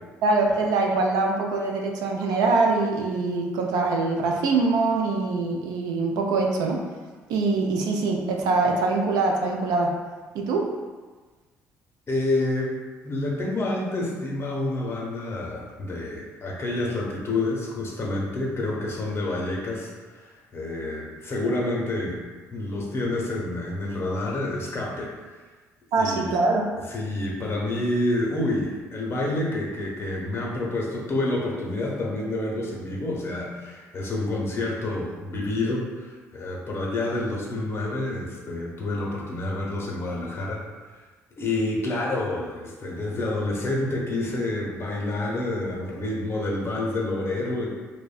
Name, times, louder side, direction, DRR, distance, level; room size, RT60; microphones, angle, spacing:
voice 1, 0.2-6.8 7.3-9.9 10.3-10.7 25.9-26.7, right 3 dB, 70° right, 0 dB, 0.4 m, -23 dB
voice 2, 12.1-12.7 13.0-22.2 22.5-25.1 26.0-26.4 26.9-40.6 41.4-47.7, left 2 dB, 40° left, -2 dB, 0.7 m, -28 dB
2.5 x 2.1 x 2.4 m, 1.3 s
hypercardioid pair, 60°, 7 cm